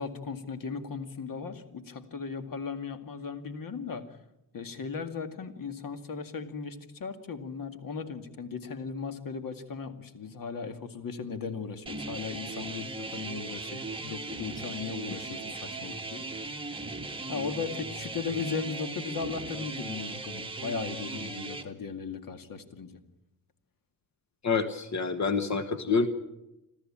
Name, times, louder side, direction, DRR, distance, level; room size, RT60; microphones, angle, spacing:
voice 1, 0.0-4.2 4.5-16.3 17.3-23.0, left 5 dB, 65° left, 8 dB, 2.2 m, -37 dB
sound 1, 11.9-21.6, right 3 dB, 15° right, 2.0 m, -38 dB
voice 2, 24.4-26.1, left 5 dB, 50° left, 9 dB, 1.5 m, -27 dB
27.0 x 13.5 x 8.7 m, 0.91 s
wide cardioid pair, 115°, 36 cm